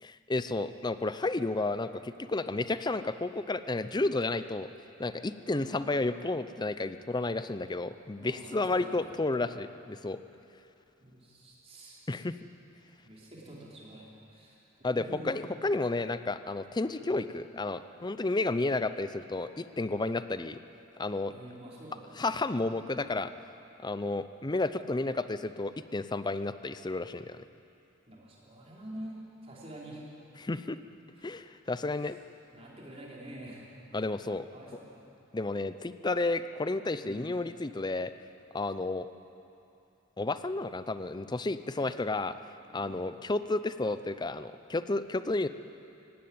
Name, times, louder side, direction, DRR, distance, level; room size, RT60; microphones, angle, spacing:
voice 1, 0.0-4.7 5.0-10.2 12.1-12.4 14.8-20.6 21.0-21.3 22.2-23.3 23.8-27.4 30.4-30.8 31.2-32.2 33.9-34.5 35.3-38.1 38.5-39.1 40.2-42.4 42.7-45.5, left 2 dB, 20° left, 12 dB, 0.5 m, -32 dB
voice 2, 8.2-9.1 11.0-12.0 13.0-15.3 17.0-17.2 21.3-22.3 22.6-23.1 28.1-30.0 31.1-31.4 32.0-32.2 32.5-33.6 34.5-35.1 37.0-37.4 42.7-42.9, right 1 dB, 30° right, -4 dB, 4.3 m, -47 dB
17.5 x 17.5 x 8.8 m, 2.7 s
head